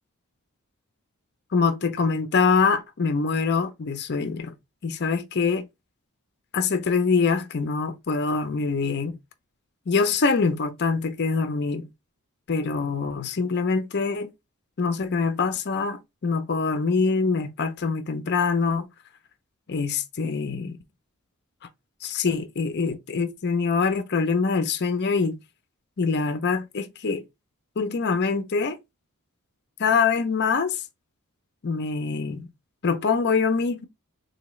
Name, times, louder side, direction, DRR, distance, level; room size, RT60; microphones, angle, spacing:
voice 1, 1.5-4.5 4.8-5.7 6.5-9.2 9.9-11.9 12.5-14.3 14.8-18.9 19.7-20.8 22.0-25.4 26.0-27.2 27.8-28.8 29.8-30.8 31.6-32.5 32.8-33.9, left 5 dB, 50° left, 0.5 m, -24 dB
3.9 x 2.7 x 3.0 m
head